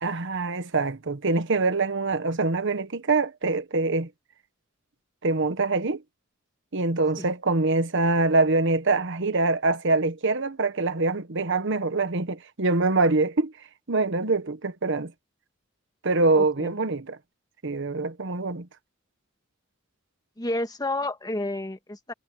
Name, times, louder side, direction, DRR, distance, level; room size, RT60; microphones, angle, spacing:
voice 1, 0.0-4.1 5.2-6.0 6.7-13.5 13.9-15.1 16.0-17.2 17.6-18.7, right 3 dB, 65° right, 1.2 m, -24 dB
voice 2, 16.4-16.7 20.4-22.1, left 2 dB, 20° left, 1.6 m, -30 dB
head